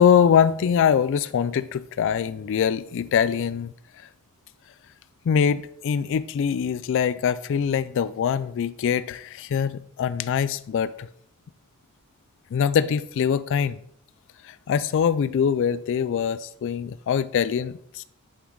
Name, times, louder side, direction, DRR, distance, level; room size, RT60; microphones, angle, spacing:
voice 1, 0.0-3.7 5.3-11.1 12.5-13.8 14.4-18.0, left 7 dB, 60° left, 15 dB, 0.3 m, -23 dB
8.1 x 5.9 x 3.7 m, 0.67 s
head